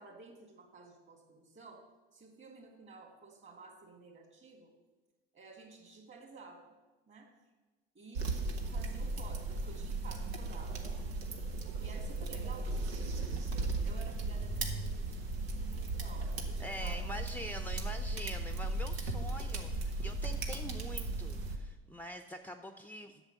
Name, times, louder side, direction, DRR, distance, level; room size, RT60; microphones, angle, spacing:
voice 1, 0.0-1.9 2.1-4.7 5.3-6.7 7.1-7.3 7.9-8.3 8.7-10.9 11.8-17.1, right 4 dB, 40° right, 2 dB, 3.1 m, -53 dB
sound 1, 8.2-21.6, right 2 dB, 90° right, 1.2 m, -36 dB
voice 2, 16.6-23.2, equal, 5° left, 7 dB, 0.7 m, -45 dB
8.0 x 6.7 x 8.2 m, 1.2 s
hypercardioid pair, 70°, 30 cm